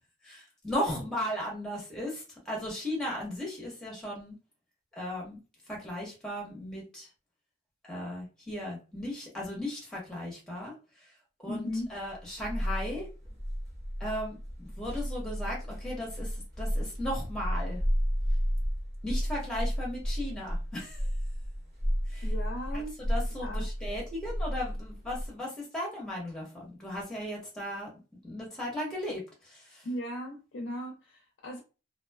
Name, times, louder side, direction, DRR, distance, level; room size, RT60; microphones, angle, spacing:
voice 1, 0.2-4.3 4.9-5.4 5.7-7.1 7.9-10.7 11.4-13.1 14.0-17.8 19.0-21.1 22.1-22.3 23.0-28.0 28.2-29.9, left 1 dB, 5° left, 1.0 m, -36 dB
voice 2, 11.4-11.9 22.2-22.9 23.4-23.7 29.8-31.6, equal, 65° left, 0.5 m, -37 dB
sound 1, 11.8-25.3, equal, 50° right, 0.9 m, -32 dB
2.5 x 2.3 x 2.3 m
head